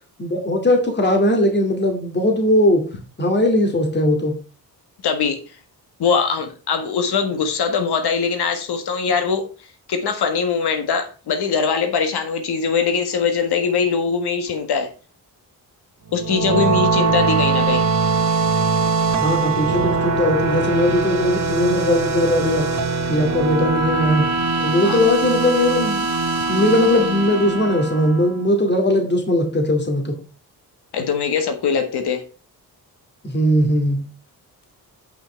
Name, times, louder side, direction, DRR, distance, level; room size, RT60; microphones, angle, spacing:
voice 1, 0.2-2.8 3.2-4.4 19.2-22.7 23.1-24.3 24.6-26.1 26.5-30.2 33.2-34.1, left 1 dB, 25° left, 3 dB, 2.3 m, -19 dB
voice 2, 5.0-5.4 6.0-9.5 9.9-14.9 16.1-17.9 24.8-25.0 30.9-32.2, left 5 dB, 90° left, 7 dB, 1.7 m, -21 dB
Pad rich, 16.1-28.5, right 4 dB, 45° right, 1.7 m, -21 dB
8.7 x 6.0 x 4.3 m, 0.34 s
cardioid pair, 100°, 38 cm